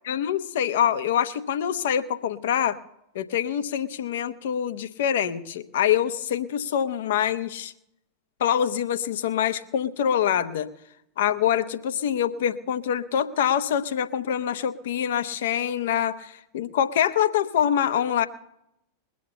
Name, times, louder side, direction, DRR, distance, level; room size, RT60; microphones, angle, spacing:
voice 1, 0.1-2.8 3.1-7.7 8.4-10.7 11.2-18.3, left 9 dB, 55° left, 11 dB, 0.9 m, -25 dB
21.0 x 7.5 x 6.8 m, 0.79 s
figure-of-eight pair, 90°, 0 cm